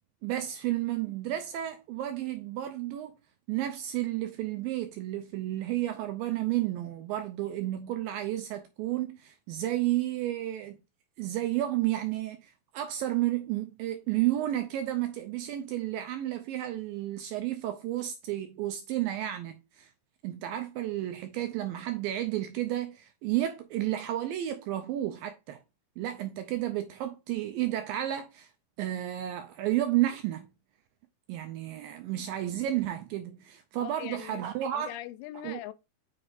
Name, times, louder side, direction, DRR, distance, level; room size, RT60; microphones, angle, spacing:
voice 1, 0.2-3.2 3.5-10.8 11.2-19.9 20.2-25.6 26.0-28.5 28.8-30.5 31.3-35.0 35.4-35.6, right 13 dB, 80° right, 2.2 m, -32 dB
voice 2, 33.8-34.5 34.7-35.7, left 13 dB, 85° left, 2.5 m, -41 dB
7.7 x 5.9 x 2.5 m
omnidirectional pair, 4.5 m